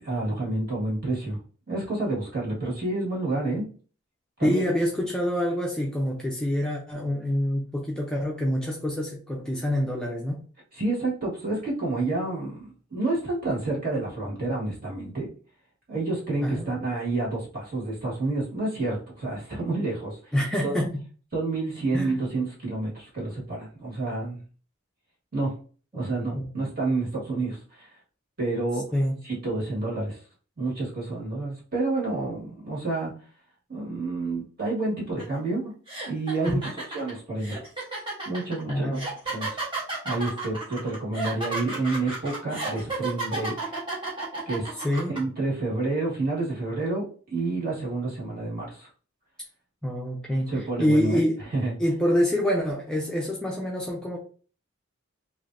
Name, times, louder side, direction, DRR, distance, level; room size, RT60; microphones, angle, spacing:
voice 1, 0.0-1.4 1.7-3.7 4.4-4.6 10.7-15.3 15.9-20.3 20.6-20.7 21.3-24.4 25.3-25.5 25.9-27.9 28.4-28.8 29.2-30.2 30.6-33.1 33.7-35.7 36.1-36.6 36.9-37.6 38.2-39.0 39.3-39.6 40.0-43.7 44.5-44.8 45.1-48.9 50.5-51.2 51.5-51.7, right 2 dB, 45° right, 1.5 m, -29 dB
voice 2, 4.4-10.4 16.4-16.7 20.3-20.9 21.9-22.2 26.3-26.5 28.9-29.2 38.7-39.1 44.8-45.1 49.8-51.4 51.8-54.2, equal, 5° left, 0.4 m, -26 dB
sound 1, 35.2-35.4 35.9-45.2, right 3 dB, 25° right, 0.9 m, -32 dB
3.2 x 2.6 x 2.5 m
head